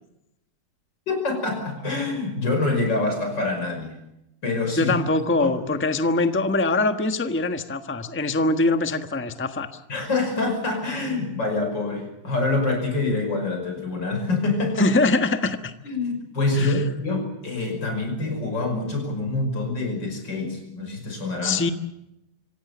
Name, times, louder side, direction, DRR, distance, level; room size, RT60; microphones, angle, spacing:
voice 1, 1.1-4.0 4.4-5.0 5.4-5.5 9.9-14.9 15.8-21.6, left 2 dB, 80° left, 5 dB, 6.3 m, -26 dB
voice 2, 4.8-9.7 14.8-15.7 16.5-16.8 21.4-21.7, left 2 dB, 10° left, 8 dB, 1.1 m, -23 dB
26.0 x 16.5 x 8.4 m, 0.85 s
omnidirectional pair, 1.9 m